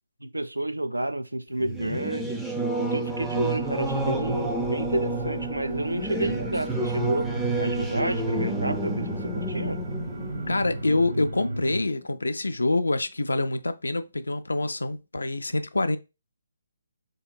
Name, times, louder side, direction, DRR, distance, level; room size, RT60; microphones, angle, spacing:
voice 1, 0.2-2.3 2.8-7.3 7.6-9.8, right 1 dB, 85° right, 0.3 m, -30 dB
Singing / Musical instrument, 1.6-11.7, right 2 dB, ahead, 0.4 m, -30 dB
sound 1, 3.1-11.9, right 2 dB, 55° right, 0.7 m, -35 dB
voice 2, 10.5-16.0, left 2 dB, 75° left, 0.3 m, -26 dB
3.6 x 2.8 x 2.2 m
figure-of-eight pair, 140°, 0 cm